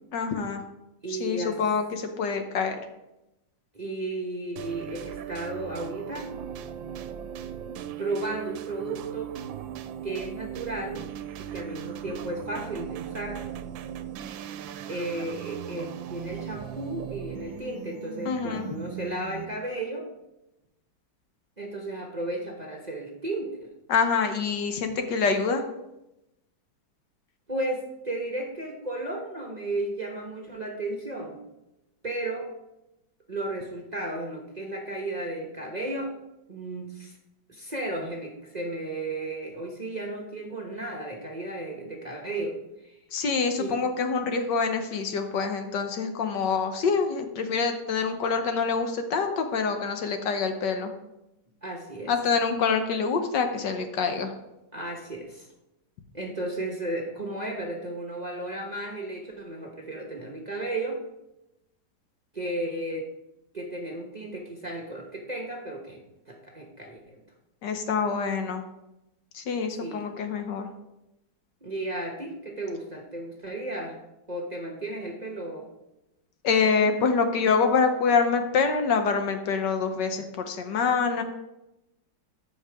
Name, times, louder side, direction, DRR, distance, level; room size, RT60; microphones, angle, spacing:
voice 1, 0.1-0.6 1.1-2.8 18.2-18.7 23.9-25.6 43.1-50.9 52.1-54.3 67.6-68.6 69.3-70.7 76.4-81.2, left 5 dB, 70° left, 6 dB, 1.4 m, -26 dB
voice 2, 1.0-1.6 3.7-6.3 8.0-9.3 10.0-11.0 11.5-13.4 14.9-20.1 21.6-23.5 27.5-31.4 32.0-32.5 33.3-36.1 36.5-37.2 37.5-42.6 42.8-43.0 43.6-43.7 51.6-52.1 54.7-55.5 56.1-61.0 62.3-63.1 63.5-66.0 66.3-67.2 69.8-70.1 71.6-74.0 74.3-75.7, right 2 dB, 25° right, 0 dB, 1.0 m, -34 dB
sound 1, 4.6-19.7, right 9 dB, 90° right, 1.3 m, -38 dB
13.5 x 5.7 x 3.5 m, 0.91 s
omnidirectional pair, 2.0 m